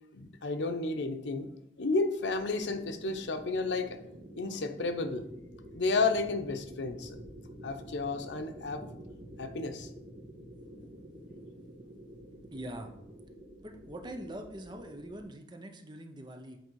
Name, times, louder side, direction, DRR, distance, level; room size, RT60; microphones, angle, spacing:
voice 1, 0.1-1.5 1.8-4.0 4.4-5.3 5.7-7.2 7.6-8.8 9.4-9.9, left 3 dB, 85° left, 7 dB, 0.8 m, -32 dB
sound 1, 2.2-15.2, equal, 50° right, 1.6 m, -49 dB
voice 2, 12.5-12.9 13.6-16.6, right 1 dB, 25° right, 5 dB, 0.6 m, -43 dB
8.2 x 4.3 x 4.6 m, 0.81 s
head